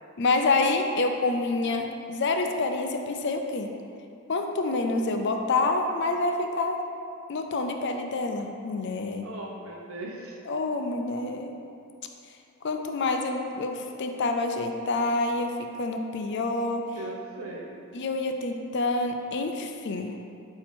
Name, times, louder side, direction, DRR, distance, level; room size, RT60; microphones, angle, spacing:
voice 1, 0.2-3.7 4.3-6.8 7.3-9.3 10.5-11.5 12.6-16.9 17.9-20.2, left 3 dB, 50° left, 4 dB, 0.4 m, -27 dB
voice 2, 9.2-10.4 16.9-17.8, right 2 dB, 70° right, -1 dB, 0.9 m, -39 dB
8.4 x 2.9 x 4.4 m, 2.5 s
head